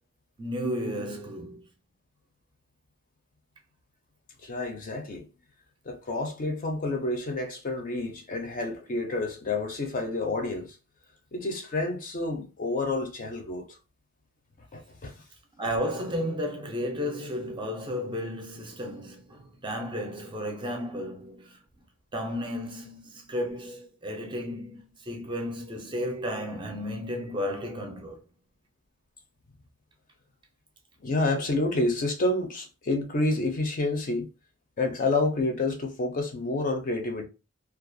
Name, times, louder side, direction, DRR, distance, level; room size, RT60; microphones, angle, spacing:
voice 1, 0.4-1.6 15.6-21.6 22.1-28.2, equal, 20° right, 0.5 m, -33 dB
voice 2, 4.4-5.3 5.8-10.8 11.3-13.6 14.7-15.1 31.0-34.3 34.8-37.2, left 2 dB, 40° left, 0.5 m, -29 dB
2.3 x 2.2 x 2.6 m
head